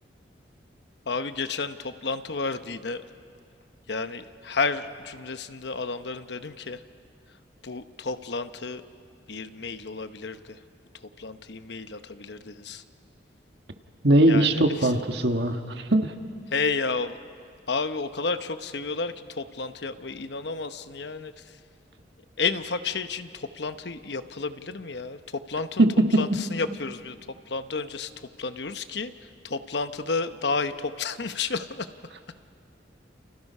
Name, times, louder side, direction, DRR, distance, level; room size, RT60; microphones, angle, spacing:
voice 1, 1.1-3.1 3.9-6.8 7.6-8.8 9.3-10.6 10.9-12.8 14.3-14.9 16.5-17.2 17.7-21.6 22.4-25.9 26.1-27.2 27.5-31.9, left 4 dB, 70° left, 10 dB, 0.9 m, -31 dB
voice 2, 14.0-16.1 25.8-26.2, right 1 dB, 65° right, 5 dB, 1.6 m, -20 dB
30.0 x 29.5 x 5.5 m, 2.3 s
head